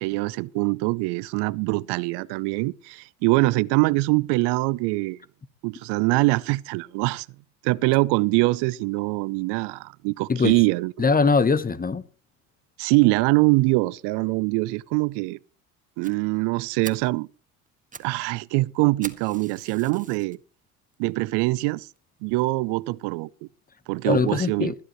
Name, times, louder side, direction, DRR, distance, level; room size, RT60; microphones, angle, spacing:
voice 1, 0.0-5.2 5.6-7.3 7.6-10.9 12.8-15.4 16.0-17.3 18.0-20.4 21.0-21.9 22.2-23.3 23.9-24.7, right 23 dB, 65° right, 0.6 m, -23 dB
voice 2, 11.0-12.0 24.0-24.7, left 4 dB, 20° left, 1.1 m, -21 dB
Fire, 16.0-16.1 16.5-16.6 16.8-17.1 17.7-18.1 18.4-18.5 19.0-20.4 20.9-21.0 21.6-21.7 22.0-22.1 22.4-22.5, right 4 dB, 20° right, 1.6 m, -42 dB
21.5 x 11.0 x 3.0 m
hypercardioid pair, 75°, 44 cm